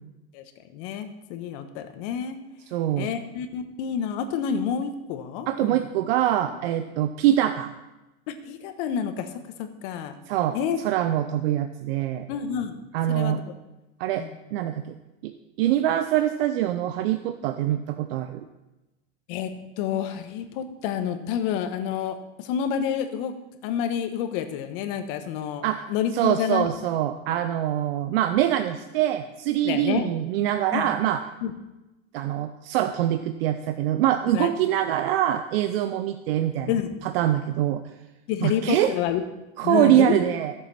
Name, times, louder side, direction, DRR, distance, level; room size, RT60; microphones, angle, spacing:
voice 1, 0.7-2.4 3.0-5.8 8.3-9.3 9.6-10.1 10.5-10.8 12.3-12.8 13.1-13.5 14.2-14.3 19.3-19.5 19.8-23.3 23.6-26.7 27.3-27.4 29.6-30.1 30.7-30.9 31.4-31.5 34.3-34.5 36.7-36.9 38.3-39.2 39.6-40.1, left 8 dB, 65° left, 8 dB, 1.4 m, -28 dB
voice 2, 2.7-3.1 5.5-7.7 10.3-12.3 12.9-13.4 14.0-14.8 15.2-18.5 25.6-25.8 26.1-31.2 32.1-36.7 37.0-37.8 38.4-38.9 39.6-40.5, right 12 dB, 75° right, 9 dB, 0.7 m, -24 dB
15.5 x 7.1 x 4.3 m, 1.0 s
supercardioid pair, 115°, 30 cm